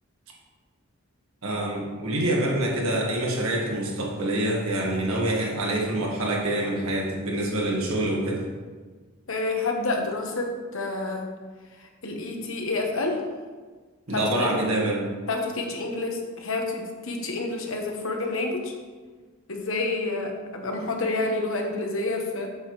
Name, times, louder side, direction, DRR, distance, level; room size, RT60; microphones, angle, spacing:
voice 1, 1.4-8.5 14.1-15.1, right 1 dB, 85° right, -2 dB, 1.8 m, -26 dB
voice 2, 9.3-11.3 12.0-13.2 14.1-14.5 15.3-18.7 19.5-22.5, left 2 dB, 70° left, 2 dB, 1.3 m, -28 dB
8.6 x 7.1 x 3.2 m, 1.4 s
head